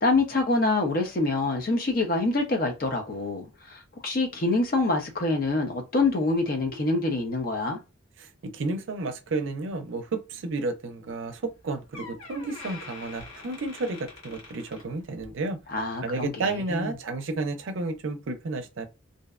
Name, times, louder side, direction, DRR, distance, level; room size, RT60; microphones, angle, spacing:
voice 1, 0.0-7.8 15.7-16.3 16.7-16.9, left 2 dB, 45° left, 0.6 m, -26 dB
voice 2, 8.2-15.6 16.0-18.9, right 3 dB, 70° right, 0.5 m, -32 dB
Door, 11.5-11.6 11.9-15.4 15.8-16.1 16.8-16.9, left 3 dB, 85° left, 1.0 m, -45 dB
2.5 x 2.1 x 2.3 m
head